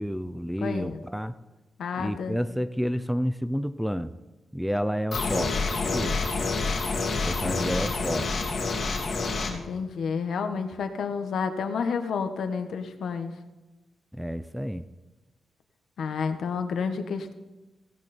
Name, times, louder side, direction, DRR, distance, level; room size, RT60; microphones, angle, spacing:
voice 1, 0.0-1.3 2.0-4.1 4.5-6.2 7.2-8.3 14.1-14.8, equal, ahead, 12 dB, 0.5 m, -30 dB
voice 2, 0.6-1.0 1.8-2.4 7.4-7.8 9.5-13.3 16.0-17.3, left 5 dB, 70° left, 7 dB, 1.4 m, -30 dB
sound 1, 5.1-9.5, left 3 dB, 45° left, 2.5 m, -28 dB
17.0 x 16.0 x 4.4 m, 1.1 s
wide cardioid pair, 165°, 0 cm